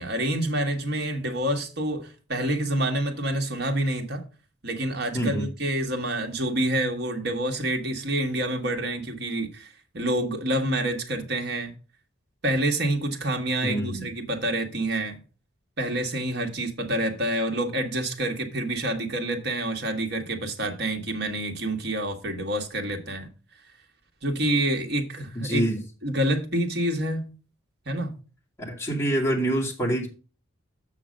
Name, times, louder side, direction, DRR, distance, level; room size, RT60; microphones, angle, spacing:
voice 1, 0.0-4.2 4.6-9.7 9.9-11.7 12.4-15.2 15.8-23.3 24.2-25.6 26.0-27.3 27.8-28.1, right 1 dB, 50° right, 1.5 m, -27 dB
voice 2, 5.1-5.5 13.6-14.1 25.3-25.8 28.7-30.1, right 1 dB, 15° left, 2.3 m, -26 dB
7.4 x 6.0 x 5.0 m
head